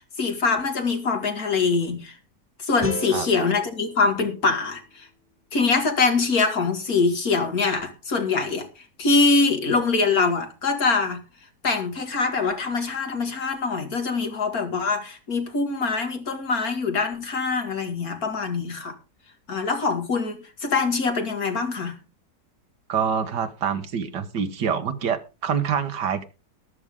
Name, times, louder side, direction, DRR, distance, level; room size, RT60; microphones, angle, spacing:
voice 1, 0.2-2.1 2.6-5.1 5.5-11.2 11.6-18.9 19.5-22.0, left 4 dB, 60° left, 2.6 m, -24 dB
sound 1, 2.8-5.9, right 1 dB, 10° left, 1.8 m, -38 dB
voice 2, 22.9-26.3, right 7 dB, 90° right, 2.0 m, -26 dB
13.5 x 12.5 x 3.7 m
omnidirectional pair, 1.8 m